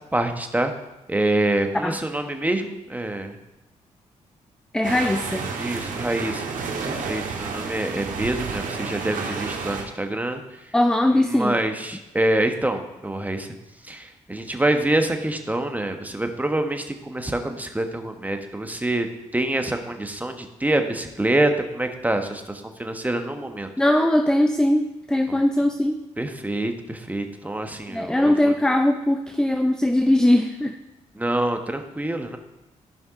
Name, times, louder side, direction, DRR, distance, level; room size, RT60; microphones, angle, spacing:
voice 1, 0.1-0.7 1.1-3.4 5.6-6.6 6.8-10.4 11.1-13.5 13.8-19.1 19.3-23.7 25.3-25.4 26.2-28.6 31.2-32.4, right 1 dB, 10° right, 6 dB, 1.2 m, -26 dB
voice 2, 4.7-5.5 10.7-11.6 23.8-26.0 27.9-30.8, left 1 dB, 5° left, 7 dB, 0.5 m, -20 dB
sound 1, 4.8-9.8, right 4 dB, 75° right, 1.7 m, -31 dB
14.5 x 5.3 x 3.7 m, 1.0 s
cardioid pair, 65°, 14 cm